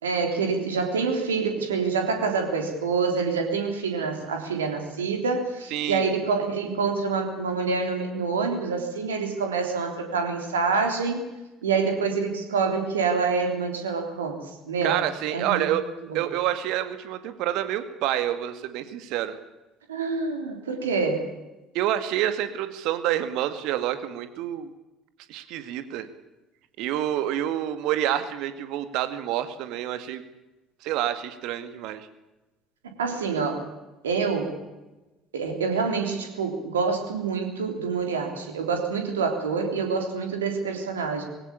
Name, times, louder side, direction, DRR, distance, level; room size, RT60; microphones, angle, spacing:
voice 1, 0.0-11.2 11.6-14.4 14.6-15.0 15.3-15.6 16.1-16.3 19.9-21.3 33.0-33.6 34.0-34.6 35.3-41.2, right 4 dB, 80° right, 4 dB, 3.5 m, -26 dB
voice 2, 5.7-6.0 14.8-15.8 16.1-19.4 21.7-24.7 25.3-26.1 26.8-30.2 30.8-32.1, right 12 dB, 65° right, 10 dB, 2.2 m, -28 dB
21.0 x 17.5 x 8.7 m, 1.1 s
figure-of-eight pair, 55°, 0 cm